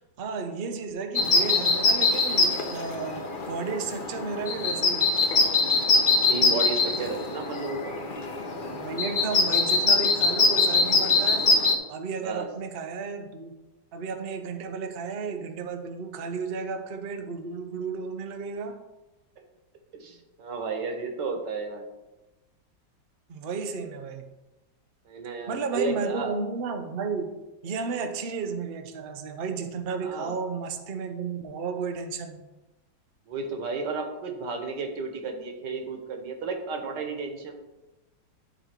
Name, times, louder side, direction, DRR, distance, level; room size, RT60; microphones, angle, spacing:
voice 1, 0.2-5.1 8.7-11.5 11.9-13.5 13.9-18.8 23.3-24.3 25.5-32.5, right 5 dB, 90° right, 6 dB, 0.5 m, -33 dB
sound 1, 1.1-11.7, left 3 dB, 50° left, 0.6 m, -23 dB
voice 2, 6.2-8.0 12.2-12.5 19.9-21.8 25.1-26.3 30.0-30.3 33.3-37.5, right 4 dB, 65° right, 4 dB, 1.7 m, -33 dB
10.5 x 4.0 x 4.4 m, 1.1 s
omnidirectional pair, 2.0 m